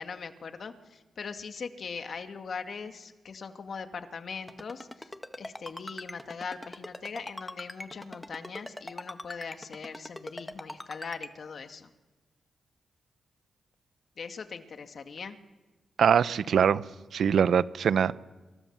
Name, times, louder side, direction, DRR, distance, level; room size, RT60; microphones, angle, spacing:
voice 1, 0.0-5.1 5.4-11.9 14.2-15.4, left 5 dB, 65° left, 7 dB, 2.1 m, -40 dB
Ringtone, 4.5-11.3, left 1 dB, 15° left, 1.9 m, -41 dB
voice 2, 16.0-16.8 17.1-18.1, right 7 dB, 75° right, 15 dB, 0.8 m, -23 dB
27.0 x 23.5 x 7.4 m, 1.2 s
cardioid pair, 55°, 0 cm